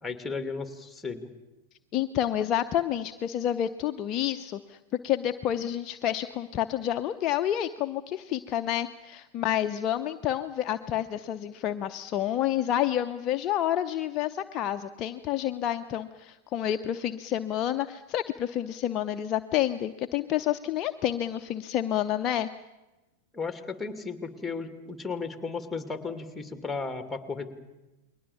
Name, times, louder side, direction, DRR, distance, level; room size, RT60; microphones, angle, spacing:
voice 1, 0.0-1.3 23.3-27.5, left 4 dB, 5° left, 8 dB, 2.5 m, -35 dB
voice 2, 1.9-4.8 5.0-22.5, left 11 dB, 35° left, 8 dB, 0.8 m, -29 dB
29.0 x 22.0 x 7.2 m, 1.1 s
figure-of-eight pair, 95°, 0 cm